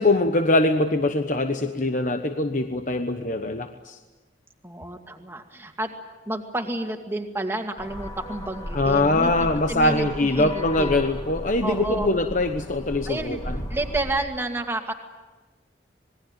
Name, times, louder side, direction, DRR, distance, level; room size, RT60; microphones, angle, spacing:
voice 1, 0.0-4.0 8.7-13.5, left 2 dB, 45° left, 6 dB, 1.1 m, -23 dB
voice 2, 4.6-5.9 6.3-10.9 11.6-12.1 13.1-13.4 13.7-14.9, right 2 dB, 15° right, 4 dB, 2.2 m, -30 dB
sound 1, 7.8-14.2, equal, 25° left, 3.2 m, -35 dB
26.5 x 21.0 x 8.9 m, 1.2 s
head